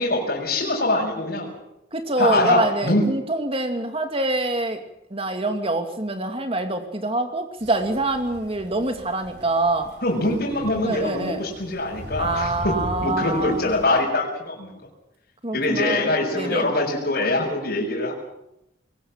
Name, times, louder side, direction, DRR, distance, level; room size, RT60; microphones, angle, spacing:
voice 1, 0.0-1.5 2.2-3.0 10.0-14.8 15.5-18.1, left 2 dB, 55° left, -4 dB, 5.7 m, -23 dB
voice 2, 1.9-4.8 5.1-9.9 10.8-11.4 12.2-13.7 15.4-16.7, right 2 dB, 30° right, 6 dB, 2.6 m, -25 dB
Crow, 7.6-14.0, equal, 65° right, 4.2 m, -38 dB
22.0 x 19.5 x 7.4 m, 0.84 s
head